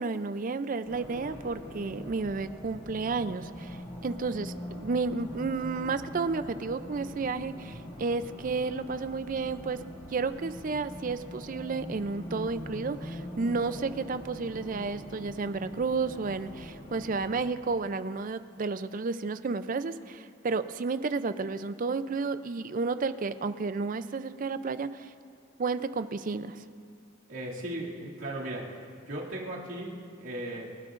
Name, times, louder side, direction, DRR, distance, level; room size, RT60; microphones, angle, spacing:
voice 1, 0.0-3.8 4.0-9.8 10.1-25.1 25.6-26.6, right 4 dB, 40° right, 12 dB, 0.4 m, -32 dB
Race car auto racing, 0.8-17.4, equal, 40° left, 2.1 m, -43 dB
voice 2, 27.3-28.8 29.1-30.7, right 1 dB, 75° right, -5 dB, 2.4 m, -37 dB
28.0 x 12.5 x 2.5 m, 2.3 s
head